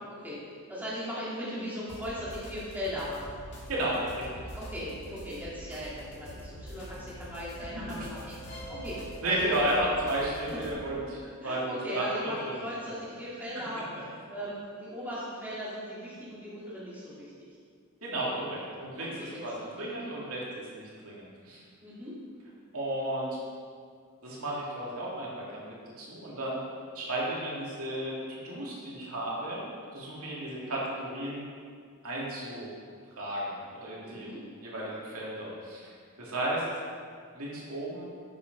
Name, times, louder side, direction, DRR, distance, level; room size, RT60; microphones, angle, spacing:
voice 1, 0.1-0.4 0.7-3.2 4.5-9.8 11.4-13.9 14.3-17.5 19.0-19.9 21.8-22.2 34.0-34.4, equal, 10° right, -9 dB, 2.4 m, -38 dB
sound 1, 1.9-10.7, right 1 dB, 55° left, 2.3 m, -44 dB
voice 2, 3.7-4.5 9.2-11.6 11.9-12.0 12.4-12.6 12.9-13.0 13.9-14.0 18.0-21.6 22.7-23.4 24.2-26.6 26.9-29.6 29.9-31.4 32.0-32.7 33.2-34.3 34.6-35.9 36.2-36.7 37.3-38.0, right 1 dB, 85° right, -5 dB, 2.3 m, -33 dB
8.5 x 5.9 x 5.2 m, 2.1 s
head